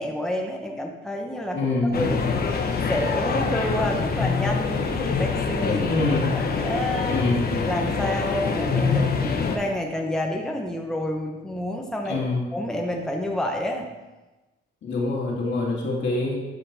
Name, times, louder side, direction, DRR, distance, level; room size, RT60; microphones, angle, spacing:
voice 1, 0.0-2.2 2.9-5.9 6.3-7.2 7.7-12.2 12.5-13.9, left 1 dB, 5° left, 1 dB, 1.2 m, -29 dB
voice 2, 1.5-2.2 5.7-6.3 7.0-7.5 12.1-12.4 14.8-16.4, left 2 dB, 65° left, -2 dB, 2.5 m, -25 dB
sound 1, 1.9-9.6, left 4 dB, 50° left, 1.2 m, -25 dB
12.5 x 5.1 x 4.3 m, 1.1 s
cardioid pair, 90°, 20 cm